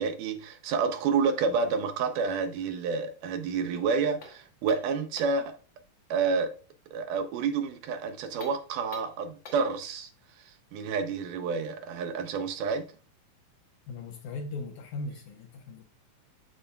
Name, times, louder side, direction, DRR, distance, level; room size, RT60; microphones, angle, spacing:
voice 1, 0.0-5.6 6.1-6.5 6.9-10.1 10.5-12.9, right 5 dB, 80° right, 2.1 m, -29 dB
sound 1, 4.2-5.5 8.3-9.8, left 3 dB, 55° left, 1.3 m, -48 dB
voice 2, 13.9-15.8, left 3 dB, 75° left, 2.0 m, -38 dB
12.5 x 4.2 x 2.2 m
omnidirectional pair, 4.0 m